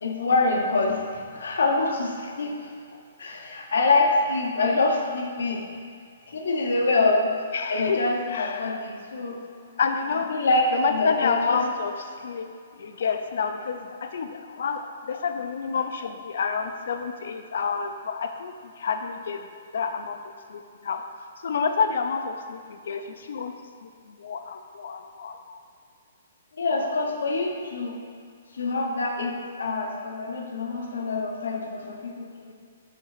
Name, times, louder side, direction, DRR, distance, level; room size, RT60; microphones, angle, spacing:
voice 1, 0.0-2.7 3.2-5.7 6.3-7.4 7.7-9.4 10.3-11.6 26.5-28.0 28.5-32.5, left 3 dB, 90° left, 1 dB, 1.0 m, -25 dB
voice 2, 7.5-8.0 8.3-8.8 9.8-10.3 10.7-12.5 12.8-18.5 18.8-19.4 19.7-20.2 20.5-21.0 21.4-22.6 22.9-23.0 23.3-23.5 23.8-23.9 24.2-25.6, left 5 dB, 60° left, 7 dB, 0.5 m, -28 dB
7.6 x 3.7 x 4.9 m, 2.2 s
hypercardioid pair, 175°, 0 cm